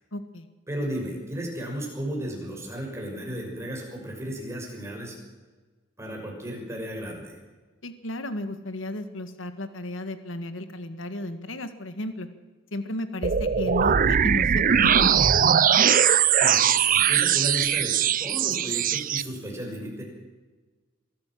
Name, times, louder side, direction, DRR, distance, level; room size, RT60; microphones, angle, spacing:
voice 1, 0.1-0.5 7.8-12.3 12.7-15.1, left 1 dB, 80° left, 9 dB, 1.7 m, -34 dB
voice 2, 0.7-5.2 6.0-7.4 16.1-17.9 18.2-20.0, right 1 dB, 15° right, 0 dB, 6.3 m, -34 dB
sound 1, 13.2-19.2, right 8 dB, 45° right, 0.5 m, -21 dB
23.5 x 14.5 x 7.7 m, 1.3 s
head